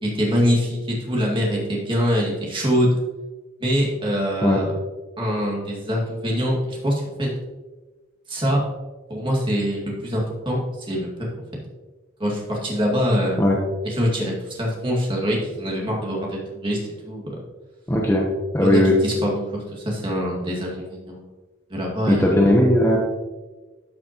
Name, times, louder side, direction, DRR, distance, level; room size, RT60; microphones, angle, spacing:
voice 1, 0.0-3.0 3.6-4.7 5.2-7.3 8.3-8.6 9.1-11.3 12.2-13.4 13.8-17.3 18.6-21.3 21.7-22.4, equal, 25° right, -3 dB, 2.1 m, -24 dB
voice 2, 17.9-18.2 18.5-19.0 22.1-23.0, left 1 dB, 15° left, -3 dB, 0.9 m, -17 dB
12.5 x 6.1 x 3.0 m, 1.2 s
head